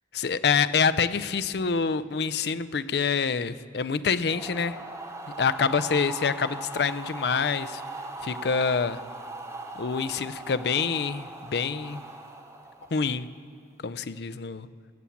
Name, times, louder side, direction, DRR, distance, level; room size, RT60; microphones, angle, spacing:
voice 1, 0.1-4.8 5.4-7.8 8.2-9.0 9.8-12.0 12.9-13.3 13.8-14.7, left 5 dB, 60° left, 13 dB, 0.5 m, -26 dB
sound 1, 4.3-13.4, right 2 dB, 15° right, 0.8 m, -39 dB
18.5 x 7.2 x 8.4 m, 2.3 s
head